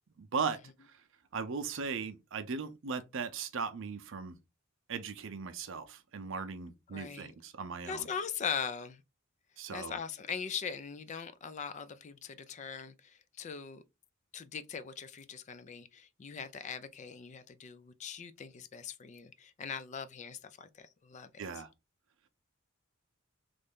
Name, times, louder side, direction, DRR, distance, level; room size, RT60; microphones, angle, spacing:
voice 1, 0.2-0.6 1.3-4.4 4.9-8.1 9.6-10.0 21.4-21.7, right 5 dB, 65° right, 0.6 m, -38 dB
voice 2, 6.9-7.3 7.8-9.0 9.7-13.8 14.3-21.4, left 6 dB, 35° left, 0.3 m, -41 dB
3.2 x 2.6 x 3.5 m
head